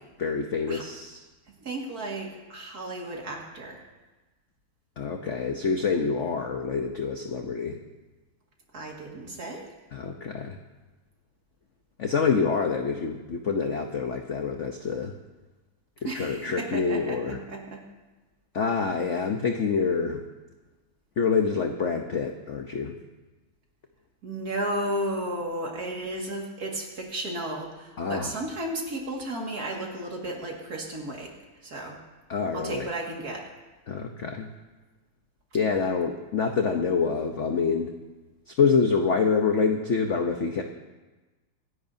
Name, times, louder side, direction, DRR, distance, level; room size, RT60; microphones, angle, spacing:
voice 1, 0.2-1.2 5.0-7.8 9.9-10.6 12.0-15.1 16.0-17.4 18.5-20.2 21.2-23.0 28.0-28.3 32.3-32.9 33.9-34.5 35.5-37.9 38.6-40.6, left 5 dB, 60° left, 4 dB, 0.7 m, -26 dB
voice 2, 1.6-3.8 8.7-9.7 16.0-17.8 24.2-31.3 31.6-32.0 32.5-33.5, right 1 dB, 45° right, -1 dB, 2.4 m, -33 dB
25.5 x 10.5 x 2.7 m, 1.2 s
omnidirectional pair, 2.3 m